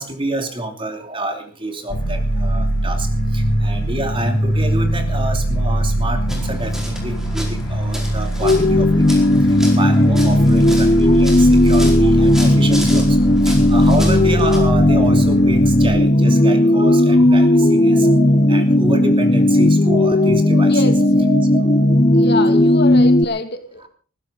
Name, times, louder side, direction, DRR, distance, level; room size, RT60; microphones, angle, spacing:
voice 1, 0.0-3.1 3.3-9.3 9.8-13.2 13.4-21.9 23.8-23.9, right 1 dB, 25° right, 6 dB, 2.8 m, -27 dB
sound 1, 1.9-15.9, right 1 dB, 70° left, 2.7 m, -21 dB
sound 2, 6.3-14.6, equal, ahead, 4.5 m, -33 dB
sound 3, 8.4-23.2, left 1 dB, 30° left, 0.8 m, -14 dB
voice 2, 20.7-21.0 22.1-23.9, left 2 dB, 45° left, 8 dB, 2.3 m, -26 dB
20.0 x 15.5 x 3.9 m, 0.39 s
head